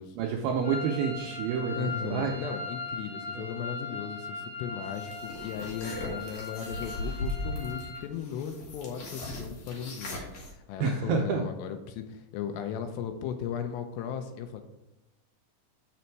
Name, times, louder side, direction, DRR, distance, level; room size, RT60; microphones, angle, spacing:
voice 1, 0.2-2.3 3.3-3.5 10.8-11.5, right 6 dB, 80° right, 1 dB, 2.3 m, -29 dB
sound 1, 0.6-8.0, left 3 dB, 35° left, 2.9 m, -39 dB
voice 2, 1.7-14.6, left 8 dB, 80° left, 7 dB, 2.7 m, -37 dB
sound 2, 4.9-10.5, left 1 dB, 60° left, 2.5 m, -38 dB
6.9 x 6.3 x 4.5 m, 0.97 s
omnidirectional pair, 5.0 m